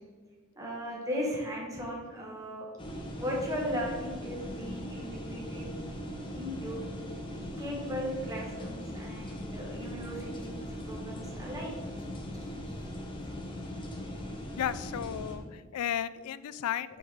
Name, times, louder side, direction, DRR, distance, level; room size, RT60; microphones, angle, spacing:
voice 1, 0.5-2.7 3.2-5.7 6.3-6.8 7.6-10.5 10.9-11.7 12.6-12.7, equal, 15° right, -3 dB, 1.1 m, -36 dB
sound 1, 2.8-15.4, equal, 20° left, 0.8 m, -40 dB
voice 2, 14.6-17.0, left 9 dB, 80° left, 15 dB, 0.3 m, -34 dB
8.5 x 3.7 x 3.3 m, 1.5 s
head